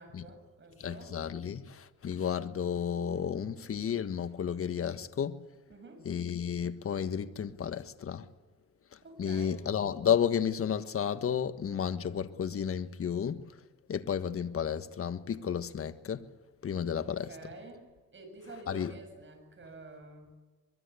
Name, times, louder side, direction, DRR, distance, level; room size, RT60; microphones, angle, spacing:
voice 1, 0.0-1.2 5.7-6.0 9.0-9.7 16.9-20.3, right 2 dB, 40° right, 7.6 m, -49 dB
voice 2, 0.8-5.4 6.0-8.3 8.9-13.5 13.9-16.3 16.6-17.3 18.7-18.9, left 8 dB, 45° left, 1.5 m, -32 dB
24.0 x 22.5 x 8.4 m
cardioid pair, 90°, 30 cm